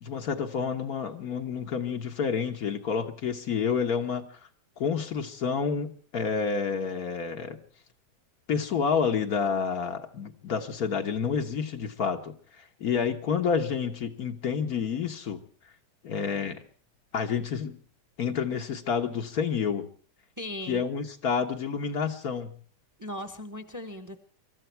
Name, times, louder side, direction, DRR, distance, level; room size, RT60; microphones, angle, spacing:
voice 1, 0.0-4.4 4.8-7.6 8.5-15.4 16.0-16.6 17.1-17.8 18.2-19.9 20.7-22.5, left 6 dB, 65° left, 5 dB, 1.6 m, -29 dB
voice 2, 20.4-20.8 23.0-24.2, left 1 dB, 10° right, 9 dB, 1.1 m, -38 dB
24.0 x 13.5 x 4.5 m, 0.42 s
omnidirectional pair, 1.8 m